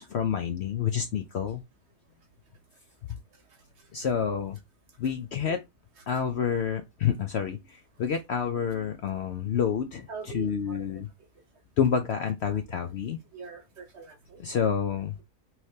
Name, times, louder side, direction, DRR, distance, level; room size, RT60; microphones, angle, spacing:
voice 1, 0.0-1.6 3.9-4.6 5.0-5.6 6.1-11.1 11.8-13.2 14.4-15.1, left 7 dB, 65° left, 0.7 m, -28 dB
voice 2, 10.1-11.0 12.5-12.6 13.3-14.4, right 5 dB, 55° right, 1.0 m, -44 dB
5.7 x 3.2 x 2.7 m
omnidirectional pair, 1.6 m